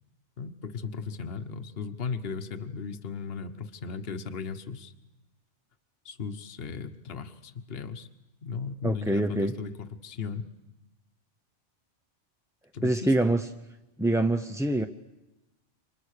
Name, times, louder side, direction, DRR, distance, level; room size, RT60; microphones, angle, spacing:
voice 1, 0.4-4.9 6.0-8.1 8.4-9.8 10.0-10.5 12.7-13.1, left 5 dB, 55° left, 1.4 m, -36 dB
voice 2, 8.8-9.6 12.8-13.5 14.0-14.9, right 1 dB, 5° right, 0.6 m, -25 dB
29.5 x 25.5 x 6.6 m
omnidirectional pair, 1.2 m